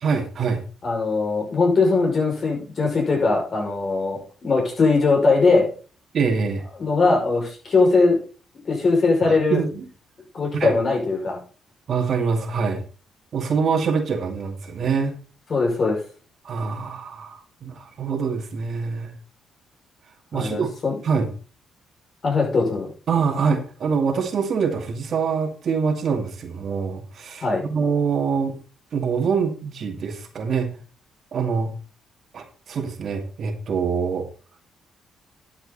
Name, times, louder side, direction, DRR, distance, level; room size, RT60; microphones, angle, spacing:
voice 1, 0.0-0.6 6.1-6.6 9.2-9.9 10.5-10.8 11.9-12.8 13.3-15.1 16.4-19.1 20.3-20.7 21.0-21.3 23.1-28.5 28.9-30.7 31.3-31.7 32.3-34.3, right 5 dB, 55° right, 4 dB, 2.2 m, -24 dB
voice 2, 0.8-5.7 6.8-8.2 8.6-9.6 10.3-11.4 15.5-16.0 20.3-21.0 22.2-22.9 27.4-27.6, left 3 dB, 45° left, 0 dB, 5.9 m, -20 dB
11.5 x 7.7 x 4.1 m, 0.37 s
cardioid pair, 90°, 0 cm